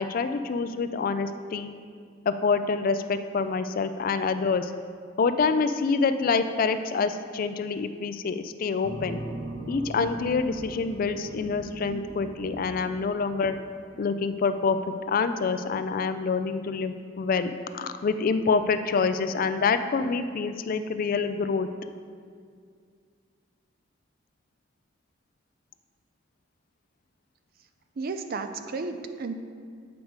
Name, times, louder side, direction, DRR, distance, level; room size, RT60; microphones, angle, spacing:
voice 1, 0.0-1.7 2.3-4.7 5.2-9.2 9.7-13.6 14.0-14.8 15.1-21.7, left 4 dB, 50° left, 10 dB, 0.3 m, -26 dB
sound 1, 8.8-14.8, right 1 dB, 85° right, 0.8 m, -40 dB
voice 2, 28.0-29.3, right 4 dB, 50° right, 8 dB, 0.5 m, -33 dB
8.0 x 5.1 x 4.6 m, 2.1 s
head